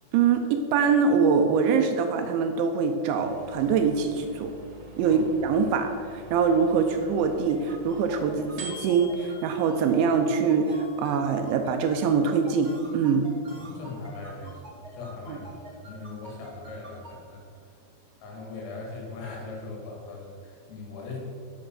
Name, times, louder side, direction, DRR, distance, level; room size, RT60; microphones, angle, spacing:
voice 1, 0.1-4.5 5.0-13.3 15.3-15.4, right 5 dB, 80° right, 5 dB, 2.8 m, -24 dB
sound 1, 3.1-12.0, right 1 dB, 55° right, 2.7 m, -46 dB
sound 2, 7.5-17.1, equal, 20° right, 1.6 m, -46 dB
voice 2, 13.6-17.4 18.2-21.2, left 3 dB, 90° left, -1 dB, 4.9 m, -40 dB
11.0 x 6.9 x 6.3 m, 2.4 s
omnidirectional pair, 5.7 m